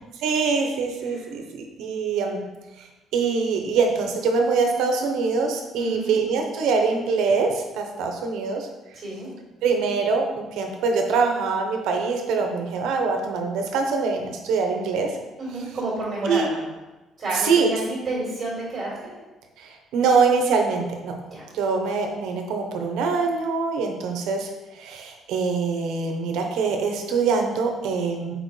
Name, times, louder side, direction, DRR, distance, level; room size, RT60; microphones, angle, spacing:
voice 1, 0.2-2.4 3.1-8.7 9.6-15.1 16.2-16.5 17.3-17.7 19.6-21.1 21.5-28.3, right 4 dB, 80° right, 3 dB, 0.9 m, -24 dB
voice 2, 5.8-6.1 8.9-9.3 15.4-16.7 17.2-19.1 21.3-21.4, right 2 dB, 30° right, -8 dB, 2.1 m, -30 dB
6.6 x 4.8 x 3.2 m, 1.1 s
cardioid pair, 180°, 0 cm